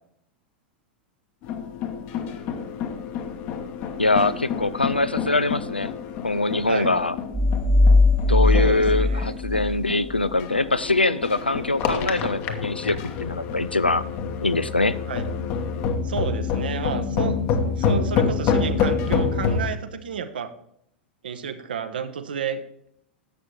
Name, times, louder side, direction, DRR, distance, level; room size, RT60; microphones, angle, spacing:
sound 1, 1.4-19.7, left 6 dB, 40° left, 1.1 m, -28 dB
voice 1, 4.0-5.9 6.2-7.2 8.3-14.0 14.4-15.0, left 2 dB, 85° left, 15 dB, 0.4 m, -23 dB
sound 2, 7.3-10.3, left 2 dB, 10° right, 0.3 m, -19 dB
voice 2, 8.5-9.4 15.1-15.3 16.0-20.5 21.2-22.6, right 7 dB, 65° right, 10 dB, 0.9 m, -31 dB
11.5 x 7.5 x 3.3 m, 0.70 s
figure-of-eight pair, 90°, 5 cm